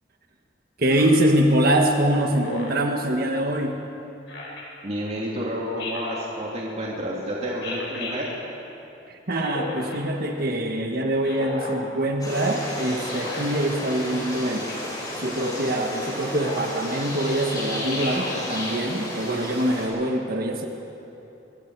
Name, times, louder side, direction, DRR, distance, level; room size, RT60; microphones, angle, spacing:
voice 1, 0.8-3.8 9.3-14.7 15.2-20.7, right 1 dB, 55° right, 3 dB, 1.4 m, -24 dB
Speech synthesizer, 0.9-1.3 2.4-2.9 4.3-4.6 5.8-6.3 7.6-8.1 9.4-10.0 11.2-11.8 13.1-13.5 14.7-15.0 16.4-16.7 18.0-18.5, left 2 dB, 75° left, 4.6 m, -34 dB
voice 2, 4.8-8.4, equal, 35° right, -4 dB, 2.6 m, -30 dB
sound 1, 12.2-19.9, left 1 dB, 20° left, 5.5 m, -33 dB
24.5 x 23.0 x 4.7 m, 2.9 s
head